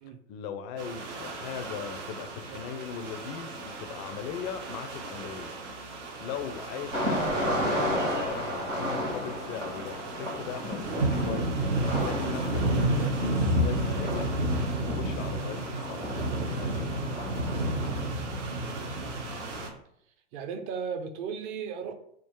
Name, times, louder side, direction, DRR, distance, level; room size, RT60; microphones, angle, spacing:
voice 1, 0.3-5.5 5.9-7.4 7.7-11.6 12.0-14.3 14.9-17.1, left 8 dB, 35° left, 9 dB, 0.4 m, -39 dB
sound 1, 0.8-19.7, right 1 dB, 70° right, 1.0 m, -32 dB
sound 2, 6.9-18.0, equal, 90° right, 1.3 m, -33 dB
voice 2, 18.7-19.6 20.3-21.9, right 6 dB, 35° right, 7 dB, 0.6 m, -37 dB
3.7 x 2.4 x 4.5 m, 0.72 s
figure-of-eight pair, 90°, 37 cm